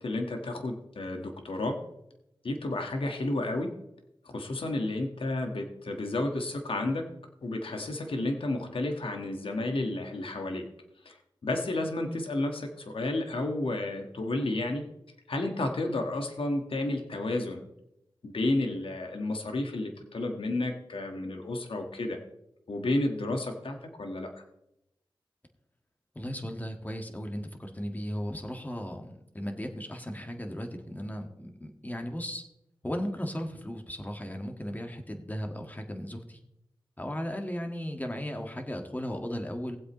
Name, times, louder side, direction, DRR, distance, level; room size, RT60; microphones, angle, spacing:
voice 1, 0.0-1.8 2.4-3.7 4.2-7.1 7.4-10.6 11.0-11.2 11.4-14.8 15.3-17.6 18.2-22.2 22.7-24.3, left 2 dB, 80° left, 4 dB, 1.5 m, -31 dB
voice 2, 26.1-32.4 32.8-36.4 37.0-39.8, equal, 20° left, 4 dB, 1.7 m, -36 dB
18.5 x 7.9 x 3.1 m, 0.84 s
wide cardioid pair, 60°, 9 cm